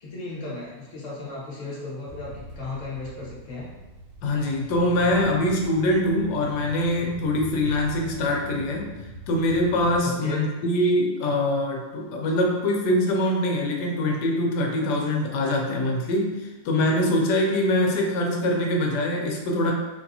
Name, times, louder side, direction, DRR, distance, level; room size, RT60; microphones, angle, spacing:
voice 1, 0.0-3.7 10.0-10.4, left 3 dB, 30° left, -6 dB, 0.8 m, -35 dB
sound 1, 2.1-10.0, right 1 dB, 60° right, 0.8 m, -41 dB
voice 2, 4.2-8.9 9.3-19.7, left 1 dB, 85° left, 0 dB, 1.2 m, -23 dB
3.4 x 2.7 x 2.7 m, 1.2 s
omnidirectional pair, 1.8 m